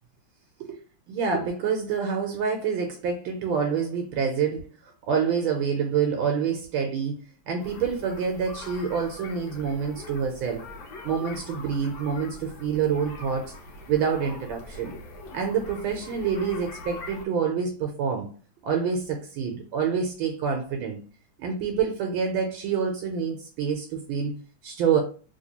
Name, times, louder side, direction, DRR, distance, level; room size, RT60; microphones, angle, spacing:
voice 1, 1.1-7.1 7.5-10.7 11.0-13.5 13.9-14.9 15.3-18.3 18.6-21.0 21.4-24.3 24.6-25.0, right 6 dB, 75° right, 1.3 m, -27 dB
sound 1, 7.6-17.3, left 2 dB, 75° left, 1.5 m, -43 dB
3.2 x 3.0 x 2.8 m
omnidirectional pair, 2.2 m